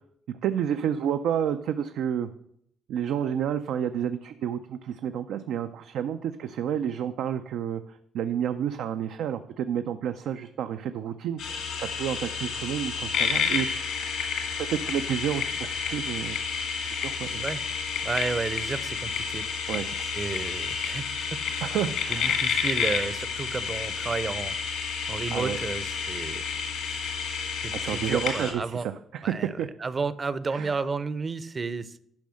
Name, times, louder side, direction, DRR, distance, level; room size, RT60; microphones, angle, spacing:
voice 1, 0.3-2.3 2.9-13.9 14.7-16.4 16.9-17.4 19.7-19.9 21.6-22.4 25.3-25.6 27.7-29.7 30.5-30.8, right 9 dB, 80° right, 8 dB, 0.4 m, -30 dB
sound 1, 11.4-28.5, left 6 dB, 85° left, 2.2 m, -30 dB
voice 2, 18.0-19.7 20.1-21.0 21.5-21.7 22.1-24.6 25.1-26.4 26.9-27.1 27.6-28.9 29.2-29.5 29.8-32.0, right 4 dB, 35° right, 15 dB, 0.6 m, -32 dB
10.5 x 5.5 x 6.3 m, 0.72 s
cardioid pair, 90°, 0 cm